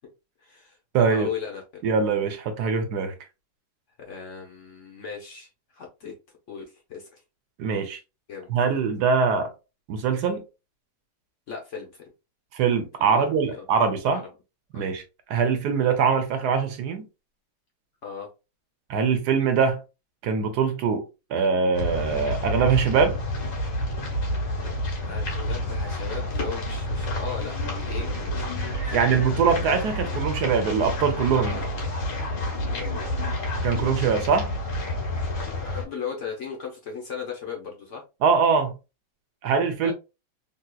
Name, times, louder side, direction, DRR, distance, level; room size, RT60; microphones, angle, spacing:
voice 1, 0.4-1.8 4.0-6.1 6.5-7.2 8.3-8.5 8.7-8.9 11.5-12.0 13.0-13.7 14.1-14.2 14.7-14.9 18.0-18.3 25.0-28.5 28.8-29.0 31.4-31.9 32.7-33.1 35.6-38.0 39.8-39.9, left 6 dB, 55° left, 1.0 m, -37 dB
voice 2, 0.9-1.3 1.8-3.1 7.6-8.0 8.5-9.5 9.9-10.4 12.5-14.2 14.7-15.0 15.3-17.0 18.9-19.8 20.2-21.0 21.3-23.2 28.7-31.6 33.6-34.5 38.2-38.8 39.4-39.9, right 6 dB, 75° right, 1.2 m, -23 dB
sound 1, 21.7-35.8, left 1 dB, 90° left, 1.8 m, -29 dB
3.5 x 2.8 x 2.2 m
omnidirectional pair, 1.8 m